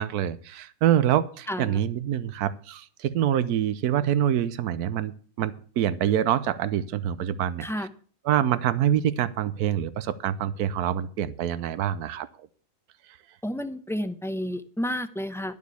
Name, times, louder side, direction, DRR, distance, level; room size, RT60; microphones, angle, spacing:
voice 1, 0.0-5.1 5.4-7.9 8.2-12.3, right 10 dB, 80° right, 14 dB, 1.3 m, -25 dB
voice 2, 1.5-1.9 7.6-7.9 13.4-15.5, equal, 5° left, 10 dB, 0.5 m, -31 dB
11.5 x 7.2 x 8.2 m, 0.42 s
omnidirectional pair, 1.6 m